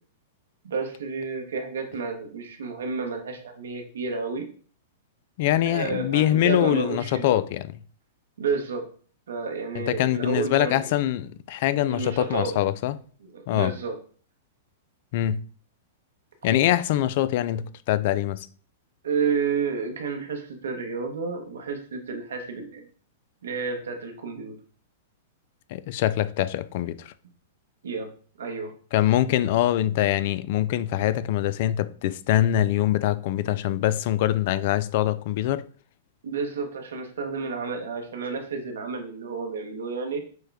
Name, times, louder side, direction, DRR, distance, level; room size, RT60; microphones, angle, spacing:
voice 1, 0.6-4.5 5.6-7.4 8.4-8.8 9.3-10.9 11.9-12.5 13.2-13.9 19.0-22.8 23.4-24.5 27.8-28.1 28.4-28.7 36.2-40.2, right 5 dB, 80° right, 1.1 m, -30 dB
voice 2, 5.4-7.7 9.7-13.0 13.5-13.7 15.1-15.4 16.4-18.5 25.7-27.1 28.9-35.7, left 13 dB, 55° left, 0.3 m, -24 dB
6.2 x 2.2 x 3.4 m
hypercardioid pair, 115°, 0 cm